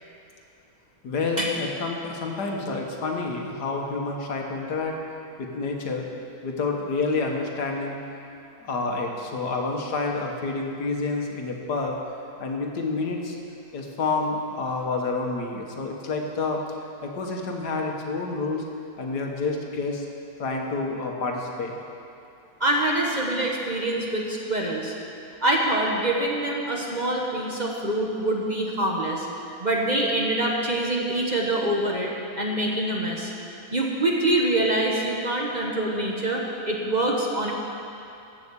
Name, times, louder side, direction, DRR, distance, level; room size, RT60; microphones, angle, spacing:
voice 1, 1.0-5.0 5.4-6.0 6.4-8.0 8.6-12.0 12.4-13.4 13.7-16.6 17.0-18.7 19.0-20.1 20.4-21.7, left 3 dB, 85° left, 1 dB, 1.9 m, -28 dB
voice 2, 22.6-24.9 25.4-29.3 29.6-32.1 32.4-33.3 33.7-37.5, right 1 dB, 30° right, -2 dB, 1.1 m, -25 dB
14.0 x 5.8 x 8.2 m, 2.7 s
omnidirectional pair, 1.7 m